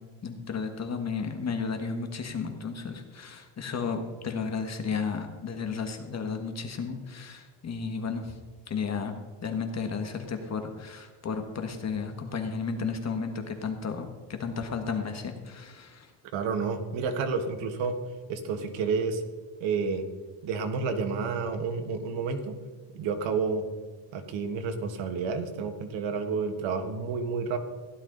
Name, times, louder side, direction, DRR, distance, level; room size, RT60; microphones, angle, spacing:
voice 1, 0.2-8.4 8.7-9.1 9.4-14.1 14.4-16.1, left 5 dB, 35° left, 5 dB, 1.4 m, -33 dB
voice 2, 16.3-18.0 18.3-19.2 19.6-20.0 20.4-22.5 22.9-23.6 24.1-27.6, right 5 dB, 90° right, 6 dB, 1.6 m, -30 dB
15.5 x 11.0 x 3.9 m, 1.4 s
cardioid pair, 135°, 44 cm